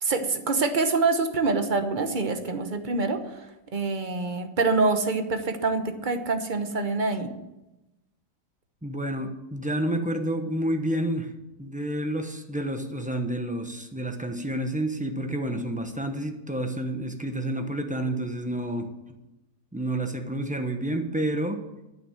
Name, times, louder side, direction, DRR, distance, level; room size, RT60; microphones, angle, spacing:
voice 1, 0.0-3.5 3.7-7.3, right 3 dB, 35° right, 8 dB, 1.0 m, -25 dB
voice 2, 8.8-11.3 11.6-18.9 19.7-21.6, right 1 dB, 5° right, 5 dB, 0.8 m, -29 dB
12.0 x 6.4 x 8.9 m, 0.98 s
omnidirectional pair, 1.8 m